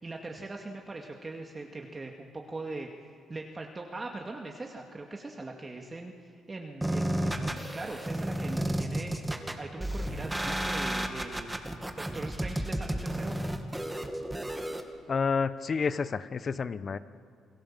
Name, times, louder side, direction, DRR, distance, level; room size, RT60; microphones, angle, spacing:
voice 1, 0.0-2.9 3.3-9.3 9.6-11.5 12.0-13.4, right 2 dB, 25° right, 1 dB, 2.2 m, -41 dB
sound 1, 6.8-14.8, right 1 dB, 10° right, 2.3 m, -32 dB
voice 2, 15.1-17.0, left 5 dB, 45° left, 14 dB, 1.0 m, -29 dB
28.5 x 20.0 x 7.5 m, 2.3 s
cardioid pair, 90°, 0 cm